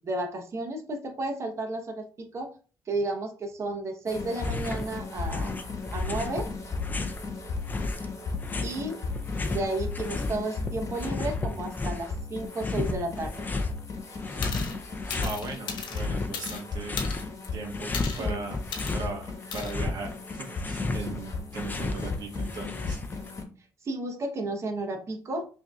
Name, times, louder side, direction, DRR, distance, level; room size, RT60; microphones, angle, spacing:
voice 1, 0.0-2.1 2.3-2.5 2.9-5.6 5.9-6.5 8.6-9.0 9.5-13.4 18.2-18.4 23.8-25.5, right 2 dB, 40° right, 2 dB, 0.9 m, -32 dB
sound 1, 4.1-23.4, left 4 dB, 40° left, 1.1 m, -37 dB
sound 2, 4.3-4.9 5.1-7.2 7.7-10.4 10.6-12.1 12.6-13.7 14.2-15.4 15.8-17.3 17.6-19.1 19.4-23.3, left 3 dB, 25° left, 0.5 m, -33 dB
sound 3, 14.4-14.8 15.1-16.6 17.0-17.5 17.9-18.3 18.7-19.0 19.5-19.7, left 6 dB, 85° left, 0.7 m, -36 dB
voice 2, 15.2-17.0 17.5-17.9 18.2-18.6 18.9-20.1 20.3-23.0, right 3 dB, 65° right, 2 dB, 0.9 m, -38 dB
5.7 x 2.7 x 2.3 m, 0.37 s
cardioid pair, 105°, 8 cm